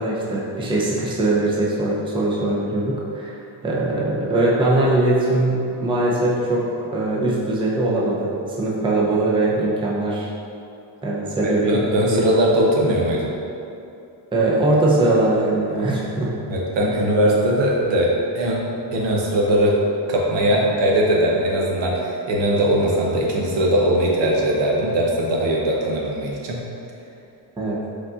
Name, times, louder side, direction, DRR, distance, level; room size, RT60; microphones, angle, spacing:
voice 1, 0.0-3.4 3.6-10.3 11.0-12.2 14.3-16.3 20.5-20.6 27.6-27.8, right 2 dB, 10° right, -5 dB, 0.6 m, -21 dB
voice 2, 11.4-13.3 16.5-18.6 18.9-19.8 20.1-26.6, right 1 dB, 60° right, -3 dB, 0.9 m, -20 dB
5.1 x 4.0 x 2.4 m, 2.7 s
cardioid pair, 110°, 49 cm